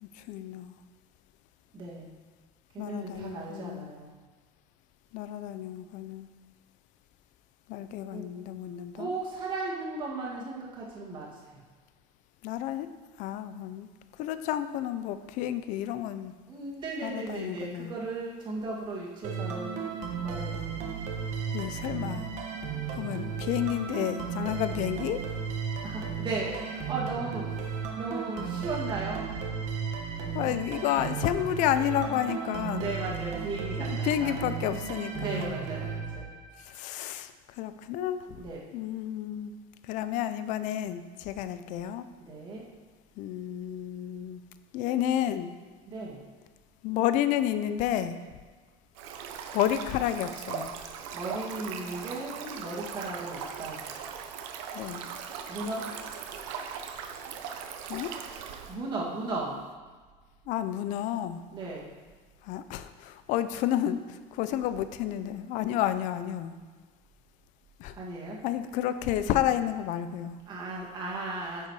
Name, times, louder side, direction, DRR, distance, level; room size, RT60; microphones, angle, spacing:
voice 1, 0.0-0.7 2.8-3.9 5.1-6.3 7.7-9.1 12.4-12.9 13.2-13.9 14.2-16.3 17.0-17.9 21.5-22.3 23.0-25.2 30.3-33.0 33.8-35.6 36.6-38.3 38.7-39.6 39.9-42.1 43.2-44.4 44.7-45.5 46.8-48.2 49.5-50.7 54.7-55.1 57.9-58.1 60.5-61.4 62.4-66.5 67.8-67.9 68.4-70.4, left 11 dB, 50° left, 11 dB, 0.6 m, -31 dB
voice 2, 1.7-2.2 2.7-4.1 8.1-8.2 9.0-11.4 16.5-19.8 20.2-20.8 25.8-29.3 32.7-34.4 35.1-36.3 38.3-38.6 42.2-42.6 45.9-46.2 51.1-53.8 55.5-55.8 58.7-59.5 61.5-61.9 67.9-68.4 70.5-71.7, right 3 dB, 30° right, -3 dB, 2.1 m, -36 dB
sound 1, 19.2-36.8, right 6 dB, 45° right, 1.2 m, -34 dB
Stream, 48.9-58.7, right 7 dB, 85° right, 1.0 m, -39 dB
10.0 x 6.7 x 4.9 m, 1.4 s
cardioid pair, 165°, 16 cm